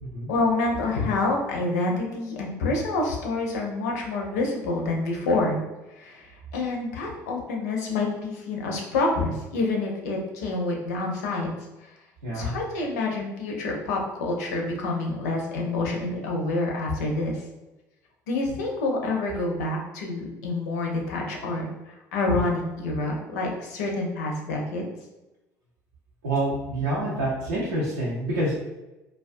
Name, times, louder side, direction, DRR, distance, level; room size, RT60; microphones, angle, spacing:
voice 1, 0.3-5.6 6.0-6.2 6.5-11.5 12.3-17.4 18.3-21.7 22.1-24.8, left 2 dB, 75° left, 0 dB, 0.5 m, -27 dB
voice 2, 12.2-12.6 26.2-28.5, right 1 dB, 80° right, -7 dB, 0.5 m, -27 dB
2.2 x 2.2 x 2.5 m, 1.0 s
hypercardioid pair, 65°, 9 cm